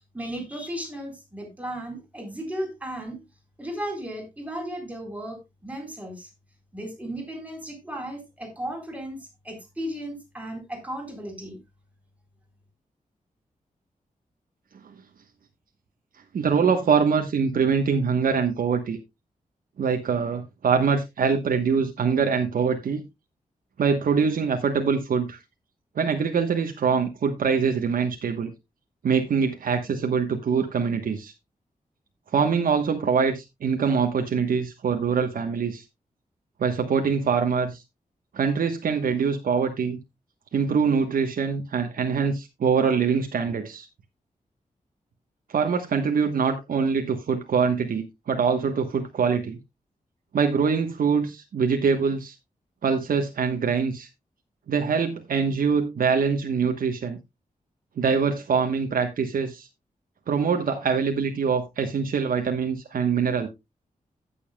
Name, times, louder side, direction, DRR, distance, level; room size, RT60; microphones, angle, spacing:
voice 1, 0.1-3.2 3.6-6.3 6.7-11.6, right 1 dB, 10° right, 3.9 m, -35 dB
voice 2, 16.3-19.0 19.8-23.0 23.8-25.4 25.9-28.5 29.0-31.3 32.3-35.8 36.6-37.8 38.3-40.0 40.5-43.9 45.5-49.6 50.3-52.3 52.8-54.1 54.7-57.2 58.0-59.7 60.3-63.5, right 6 dB, 85° right, 1.1 m, -24 dB
16.0 x 7.0 x 2.2 m
wide cardioid pair, 140°, 14 cm